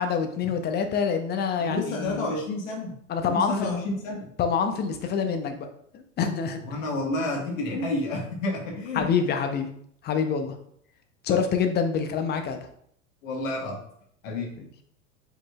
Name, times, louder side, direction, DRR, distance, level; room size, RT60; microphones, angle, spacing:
voice 1, 0.0-2.3 3.1-3.7 4.4-5.7 5.9-6.6 8.9-9.7 10.0-10.5 11.2-12.7, left 6 dB, 25° left, 7 dB, 0.6 m, -26 dB
voice 2, 1.6-2.9 3.3-4.3 6.6-9.1 11.3-11.4 13.2-13.8 14.2-14.5, left 2 dB, 70° left, 0 dB, 1.5 m, -30 dB
4.9 x 3.8 x 2.3 m, 0.67 s
hypercardioid pair, 90°, 41 cm